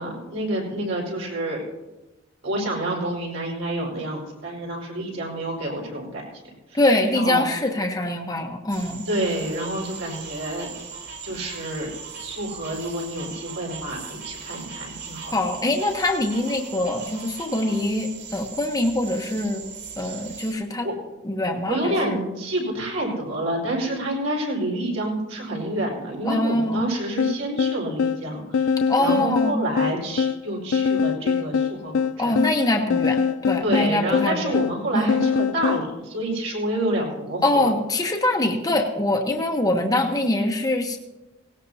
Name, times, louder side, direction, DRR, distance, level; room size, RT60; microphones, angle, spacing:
voice 1, 0.0-1.6 2.4-6.2 6.7-6.8 7.1-7.5 9.1-10.7 11.2-11.9 12.2-15.3 20.0-20.2 20.8-20.9 21.7-32.3 33.6-37.7, right 1 dB, 75° right, -2 dB, 4.7 m, -28 dB
voice 2, 6.7-9.1 15.3-19.6 20.0-20.9 21.2-22.2 26.2-26.9 28.9-29.6 32.2-34.6 34.9-35.2 37.4-41.0, left 1 dB, 20° left, 2 dB, 1.0 m, -23 dB
sound 1, 8.7-20.5, right 6 dB, 55° right, 3.5 m, -39 dB
sound 2, 27.2-35.9, left 6 dB, 75° left, 0.4 m, -24 dB
18.0 x 18.0 x 2.8 m, 1.0 s
head